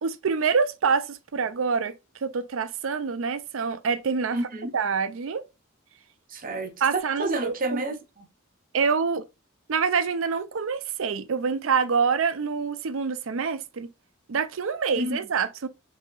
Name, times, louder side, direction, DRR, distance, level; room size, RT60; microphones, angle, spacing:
voice 1, 0.0-2.0 2.2-4.4 4.7-5.4 6.8-7.9 8.7-9.2 9.7-13.9 14.3-15.7, right 5 dB, 70° right, 0.5 m, -26 dB
voice 2, 4.3-4.7 6.3-8.3 14.9-15.3, right 2 dB, 45° right, 0.8 m, -30 dB
5.5 x 2.8 x 2.5 m
head